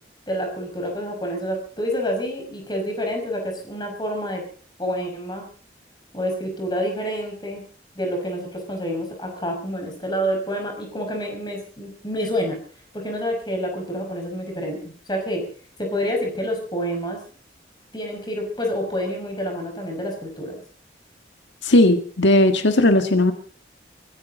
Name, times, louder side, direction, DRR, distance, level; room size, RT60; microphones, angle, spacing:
voice 1, 0.3-4.4 4.8-5.4 6.1-7.6 8.0-12.6 12.9-15.4 15.8-17.2 17.9-20.6, equal, 25° left, 2 dB, 5.7 m, -28 dB
voice 2, 21.6-23.3, left 1 dB, 85° left, 7 dB, 1.6 m, -16 dB
25.0 x 14.5 x 4.0 m, 0.41 s
head